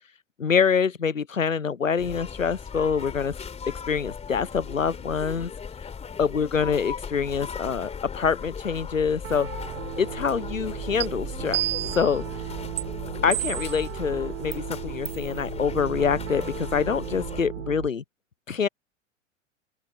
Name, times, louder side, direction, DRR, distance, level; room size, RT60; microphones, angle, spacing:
voice 1, 0.4-3.3 3.9-5.5 6.2-9.5 10.0-11.6 12.0-12.2 13.2-18.0 18.5-18.7, left 6 dB, 90° left, 0.7 m, -25 dB
sound 1, 2.0-17.4, left 6 dB, 15° left, 3.1 m, -38 dB
Piano, 9.2-17.9, right 13 dB, 60° right, 1.5 m, -36 dB
sound 2, 11.0-11.1 11.5-12.1 12.8-12.9 13.3-13.8 14.5-14.6 15.1-15.3, right 16 dB, 20° right, 0.4 m, -29 dB
open air
figure-of-eight pair, 90°, 38 cm